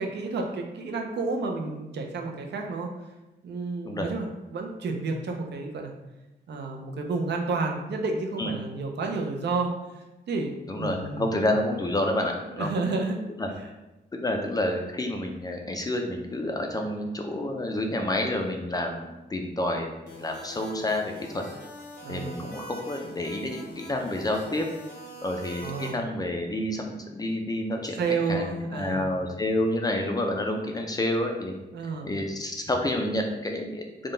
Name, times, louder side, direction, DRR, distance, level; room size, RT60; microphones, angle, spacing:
voice 1, 0.0-2.9 3.4-5.9 6.5-9.7 10.3-11.3 12.6-13.2 22.0-22.4 25.6-26.0 28.0-29.0 31.7-32.1, right 3 dB, 70° right, 2 dB, 0.5 m, -30 dB
voice 2, 10.7-12.9 13.4-13.5 14.1-21.4 22.1-24.7 25.2-28.0 28.3-31.5 32.0-34.1, left 1 dB, 20° left, 2 dB, 0.3 m, -29 dB
sound 1, 20.1-25.9, left 1 dB, 80° left, 0.8 m, -43 dB
3.7 x 2.2 x 3.7 m, 1.0 s
wide cardioid pair, 165°, 18 cm